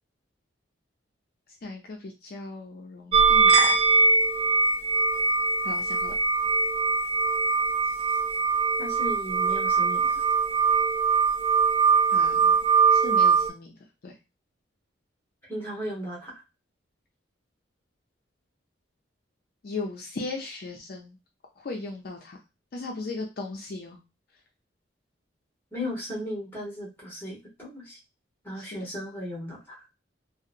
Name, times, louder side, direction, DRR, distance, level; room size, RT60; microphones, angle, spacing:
voice 1, 1.6-3.7 5.6-6.2 12.1-12.5 12.9-13.7 14.0-14.1 19.6-21.2 21.6-22.4 22.7-24.0 28.6-28.8, left 3 dB, 55° left, 1 dB, 0.4 m, -37 dB
sound 1, 3.1-13.5, right 4 dB, 30° right, 0.4 m, -22 dB
voice 2, 8.8-10.0 15.5-16.4 25.7-28.0 28.4-29.9, equal, 10° left, -3 dB, 1.0 m, -36 dB
2.8 x 2.0 x 2.4 m, 0.27 s
head